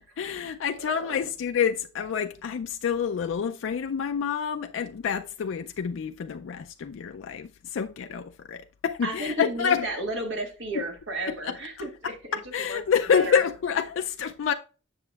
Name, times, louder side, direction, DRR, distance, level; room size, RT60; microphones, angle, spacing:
voice 1, 0.2-9.9 11.4-11.5 12.3-14.5, left 7 dB, 80° left, 0.4 m, -28 dB
voice 2, 0.8-1.3 9.0-12.4 12.7-12.8 13.1-13.4, right 1 dB, 75° right, 1.7 m, -33 dB
7.9 x 6.4 x 2.3 m
head